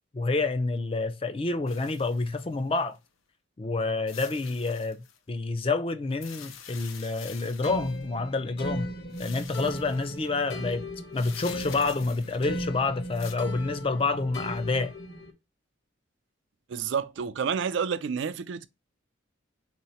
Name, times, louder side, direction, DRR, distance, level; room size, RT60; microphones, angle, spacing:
voice 1, 0.1-3.0 3.6-5.0 5.3-8.9 9.2-10.8 11.1-14.9, left 3 dB, 25° left, 0.4 m, -28 dB
sound 1, 1.7-3.0 4.1-5.2 6.1-8.1 9.1-10.3 11.1-12.6 13.1-13.3, left 8 dB, 85° left, 0.6 m, -47 dB
sound 2, 7.6-15.3, equal, 55° left, 1.0 m, -37 dB
voice 2, 16.7-18.7, right 6 dB, 65° right, 0.4 m, -29 dB
3.8 x 2.9 x 4.2 m
head